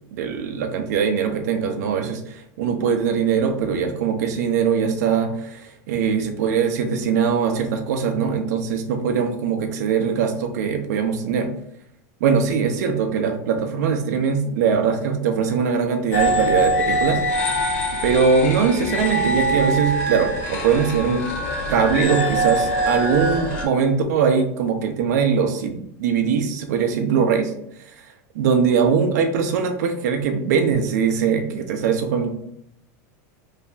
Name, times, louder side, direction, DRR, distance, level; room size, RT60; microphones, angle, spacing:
voice 1, 0.1-11.5 12.2-17.2 17.9-21.2 21.7-27.5 28.3-32.3, right 6 dB, 75° right, 5 dB, 0.7 m, -21 dB
sound 1, 16.1-23.6, right 1 dB, 55° left, 1.4 m, -23 dB
3.3 x 2.3 x 3.9 m, 0.75 s
supercardioid pair, 145°, 9 cm